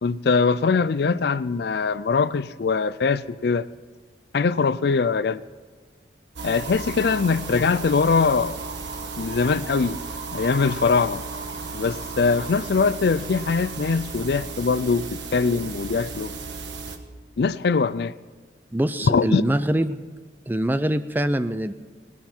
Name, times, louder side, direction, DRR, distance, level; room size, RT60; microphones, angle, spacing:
voice 1, 0.0-3.7 4.3-5.4 6.4-8.6 9.2-10.0 10.3-11.2 11.7-16.3 17.4-18.1 19.0-19.4, left 4 dB, 60° left, 0.4 m, -22 dB
sound 1, 6.4-17.0, right 4 dB, 80° right, 1.4 m, -34 dB
voice 2, 18.7-20.0 20.5-21.7, right 1 dB, 10° right, 0.5 m, -24 dB
19.0 x 13.0 x 4.5 m
head